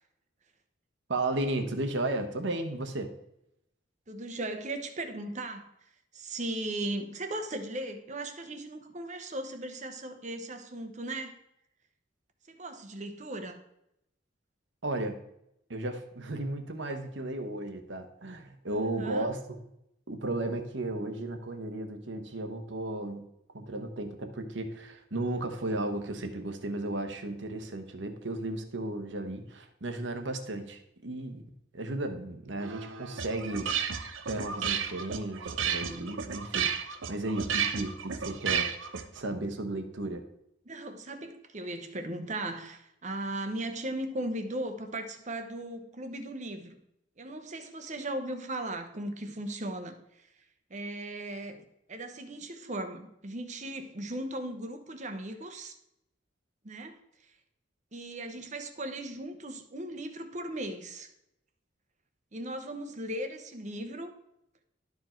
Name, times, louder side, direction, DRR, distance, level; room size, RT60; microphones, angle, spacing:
voice 1, 1.1-3.1 14.8-15.2 15.7-19.4 20.1-23.3 23.5-31.4 31.7-33.7 34.0-40.2, right 2 dB, 65° right, 6 dB, 1.1 m, -34 dB
voice 2, 4.1-5.7 6.1-11.4 12.5-13.6 18.7-19.3 40.7-46.8 47.2-50.3 50.7-55.7 56.6-57.0 57.9-61.1 62.3-64.1, right 1 dB, 40° right, 7 dB, 0.9 m, -37 dB
sound 1, 32.6-39.2, right 7 dB, 85° right, 0.7 m, -32 dB
12.0 x 4.8 x 4.4 m, 0.80 s
head